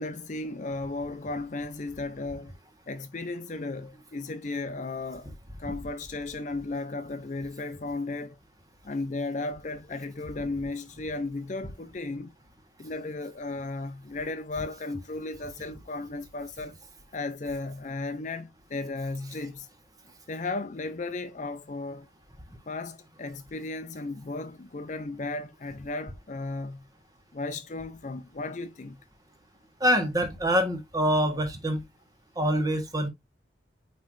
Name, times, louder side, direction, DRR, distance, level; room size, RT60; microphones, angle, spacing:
voice 1, 0.0-2.5 2.9-5.3 5.6-8.4 8.8-12.3 12.8-16.8 17.1-19.7 20.3-22.1 22.7-26.9 27.3-29.0, left 3 dB, 40° left, 0.5 m, -35 dB
voice 2, 29.8-31.8 32.3-33.1, equal, 20° right, 1.6 m, -25 dB
9.3 x 3.2 x 3.2 m
head